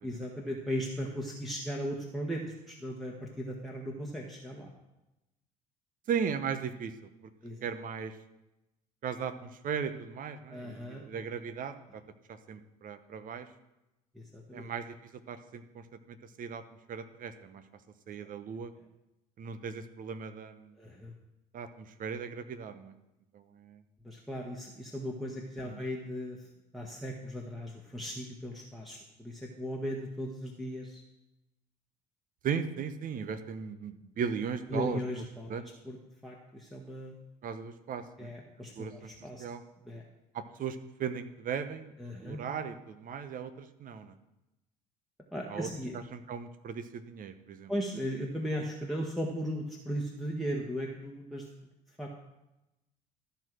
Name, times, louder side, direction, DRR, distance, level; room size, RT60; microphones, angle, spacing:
voice 1, 0.0-4.7 7.4-7.7 10.5-11.0 14.1-14.7 20.8-21.1 24.0-26.5 26.7-31.0 34.7-36.0 36.2-37.1 38.2-39.4 39.8-40.0 42.0-42.4 45.3-46.0 47.7-51.4 52.0-52.1, equal, ahead, -1 dB, 1.5 m, -37 dB
voice 2, 6.1-6.9 7.6-8.1 9.0-12.0 12.3-13.5 14.5-15.0 15.3-16.6 16.9-17.6 18.1-18.7 19.4-20.7 21.5-22.9 23.3-23.8 25.6-25.8 32.4-35.0 35.5-35.7 37.4-38.3 38.8-39.1 39.4-39.6 40.3-41.9 42.2-44.1 45.5-45.7 46.1-47.7, right 7 dB, 40° right, 10 dB, 0.9 m, -37 dB
13.0 x 4.6 x 6.2 m, 0.94 s
figure-of-eight pair, 55°, 21 cm